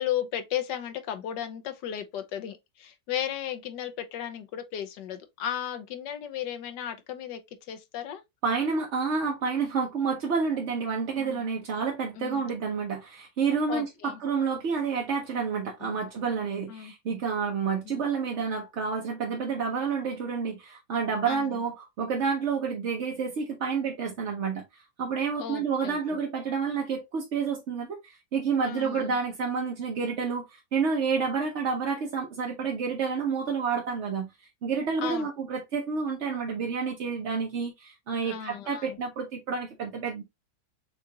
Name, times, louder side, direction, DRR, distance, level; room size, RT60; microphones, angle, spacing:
voice 1, 0.0-7.4 7.7-8.2 11.2-11.4 12.2-12.5 13.7-14.2 15.8-16.0 16.7-16.9 17.8-18.0 21.2-21.6 25.4-26.0 28.6-29.2 35.0-35.3 38.2-39.0, left 10 dB, 70° left, 1.3 m, -35 dB
voice 2, 8.4-34.3 34.6-40.2, right 5 dB, 55° right, 0.8 m, -29 dB
6.6 x 2.4 x 2.8 m
omnidirectional pair, 2.0 m